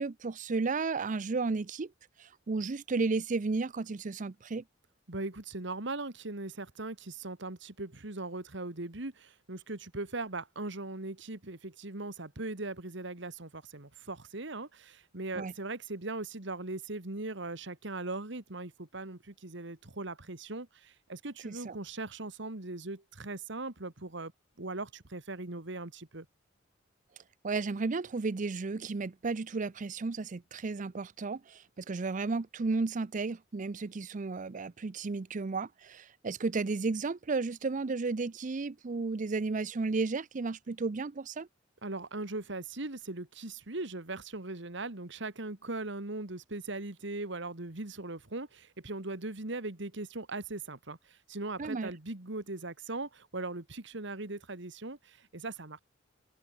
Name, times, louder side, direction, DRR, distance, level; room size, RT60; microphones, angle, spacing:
voice 1, 0.0-1.9 2.2-4.6 15.3-15.5 21.4-21.8 27.4-41.5 51.6-51.9, right 4 dB, 40° right, 0.5 m, -33 dB
voice 2, 5.1-24.3 24.6-26.3 41.8-55.8, right 2 dB, 65° right, 2.1 m, -39 dB
head